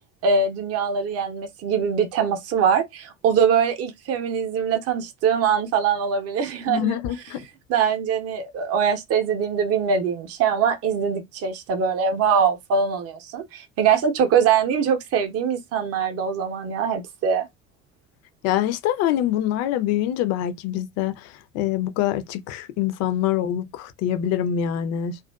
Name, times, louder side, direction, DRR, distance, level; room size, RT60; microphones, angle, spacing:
voice 1, 0.2-7.0 7.7-17.5, right 6 dB, 35° right, 0.7 m, -22 dB
voice 2, 6.7-7.4 18.4-25.2, left 11 dB, 40° left, 0.4 m, -25 dB
2.4 x 2.3 x 2.2 m
figure-of-eight pair, 60°, 41 cm